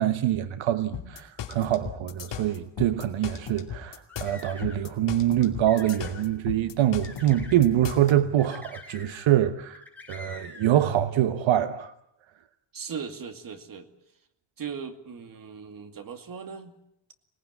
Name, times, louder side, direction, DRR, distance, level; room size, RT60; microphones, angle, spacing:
voice 1, 0.0-9.8 10.1-11.9, right 12 dB, 80° right, 1.1 m, -25 dB
sound 1, 0.9-8.1, left 8 dB, 65° left, 2.7 m, -37 dB
sound 2, 3.8-4.9 5.4-6.2 7.0-7.6 8.4-9.4 9.7-10.7, left 2 dB, 5° left, 7.3 m, -45 dB
voice 2, 12.7-13.9 14.6-16.7, right 6 dB, 45° right, 2.4 m, -38 dB
25.5 x 19.0 x 9.6 m
wide cardioid pair, 155°, 45 cm